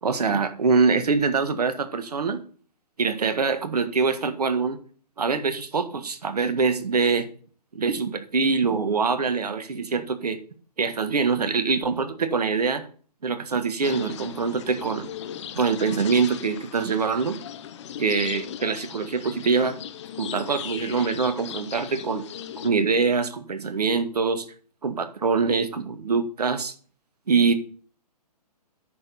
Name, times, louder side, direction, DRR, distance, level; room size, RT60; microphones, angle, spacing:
voice 1, 0.0-2.4 3.0-4.8 5.2-7.3 7.7-10.4 10.8-12.9 13.2-15.1 15.6-17.4 18.0-19.8 20.2-22.3 22.6-24.5 24.8-26.7 27.3-27.6, right 5 dB, 70° right, 9 dB, 1.7 m, -24 dB
sound 1, 13.8-22.7, left 9 dB, 45° left, 0.9 m, -38 dB
9.6 x 6.8 x 5.5 m, 0.43 s
figure-of-eight pair, 125°, 20 cm